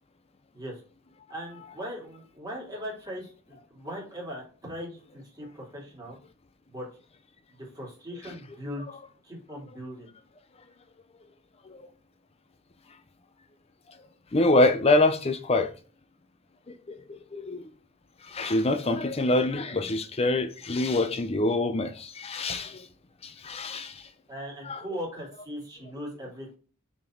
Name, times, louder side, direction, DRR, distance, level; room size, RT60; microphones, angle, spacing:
voice 1, 1.3-6.2 6.7-6.9 7.7-8.9 9.2-10.1 24.3-26.6, equal, 20° right, 3.1 m, -39 dB
voice 2, 14.3-15.7 16.7-17.7 18.2-22.9 23.2-24.1 24.7-24.8, left 2 dB, 30° left, 0.5 m, -25 dB
6.2 x 4.4 x 4.5 m
head